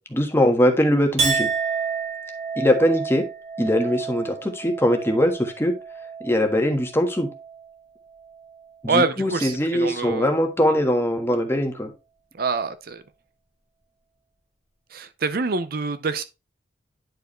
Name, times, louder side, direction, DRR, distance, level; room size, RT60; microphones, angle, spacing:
voice 1, 0.1-1.5 2.6-3.2 3.6-5.7 6.2-7.3 8.8-11.9, equal, 15° left, 1.4 m, -21 dB
Chink clink, 1.2-7.7 8.1-8.7, right 5 dB, 35° right, 1.9 m, -30 dB
voice 2, 8.9-10.3 12.4-13.0 14.9-16.2, right 4 dB, 55° right, 0.6 m, -25 dB
10.5 x 4.8 x 3.1 m
head